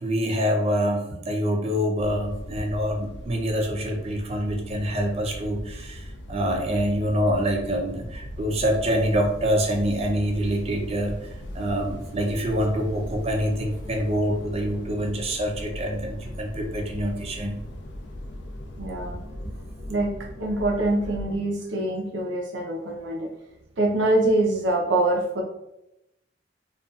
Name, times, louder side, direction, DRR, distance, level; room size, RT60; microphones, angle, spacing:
voice 1, 0.0-11.1 11.5-17.6 19.4-19.5, equal, 35° right, 2 dB, 0.4 m, -26 dB
sound 1, 2.0-21.4, equal, 70° left, 0.4 m, -38 dB
voice 2, 18.8-19.2 19.9-20.1 20.4-23.3 23.8-25.4, right 2 dB, 85° right, -1 dB, 0.6 m, -24 dB
2.6 x 2.3 x 2.3 m, 0.87 s
head